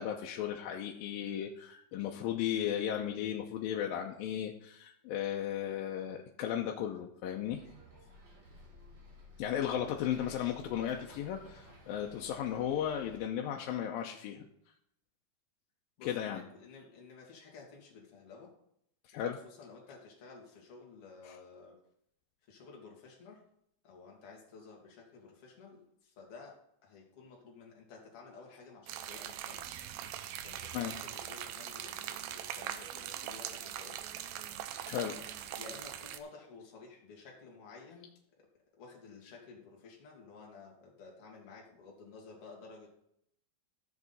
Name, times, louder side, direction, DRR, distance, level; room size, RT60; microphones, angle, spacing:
voice 1, 0.0-7.6 9.4-14.5 16.0-16.4 19.1-19.4 21.2-21.4 30.7-31.0 34.9-35.2, left 10 dB, 90° left, 1 dB, 2.4 m, -35 dB
Bus, 7.4-13.2, left 1 dB, 40° right, 1.9 m, -55 dB
voice 2, 10.1-10.5 16.0-18.5 19.1-21.8 22.5-23.4 23.8-29.7 30.3-34.0 35.0-35.2 35.6-38.1 38.4-38.5 38.7-42.9, left 4 dB, 45° left, -2 dB, 2.8 m, -53 dB
sound 1, 28.9-36.2, right 11 dB, 85° right, 2.5 m, -42 dB
13.5 x 7.3 x 4.1 m, 0.73 s
omnidirectional pair, 4.1 m